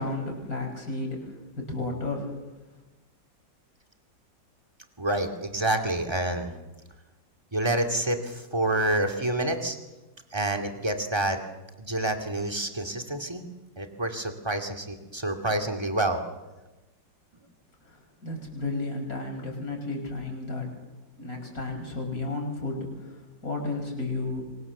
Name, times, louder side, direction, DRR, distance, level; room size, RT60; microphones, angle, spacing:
voice 1, 0.0-2.3 17.8-20.7 21.2-24.4, left 2 dB, 50° left, 2 dB, 6.3 m, -33 dB
voice 2, 5.0-6.5 7.5-9.8 10.3-11.4 11.8-13.4 13.8-16.2, right 1 dB, 15° right, 5 dB, 2.3 m, -28 dB
26.5 x 24.5 x 7.2 m, 1.1 s
omnidirectional pair, 2.0 m